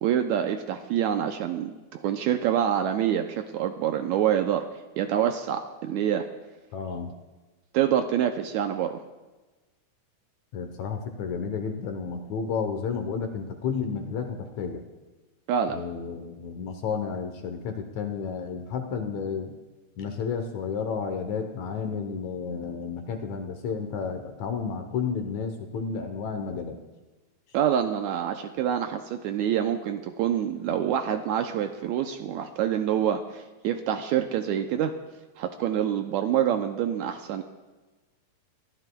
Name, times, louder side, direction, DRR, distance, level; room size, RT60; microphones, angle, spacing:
voice 1, 0.0-4.6 5.0-6.3 7.7-9.0 15.5-15.8 27.5-34.9 35.4-37.4, right 9 dB, 80° right, 6 dB, 1.8 m, -26 dB
voice 2, 6.7-7.1 10.5-14.8 15.7-19.6 20.0-26.8, left 6 dB, 70° left, 6 dB, 2.1 m, -31 dB
23.5 x 11.5 x 2.3 m, 1.2 s
omnidirectional pair, 3.7 m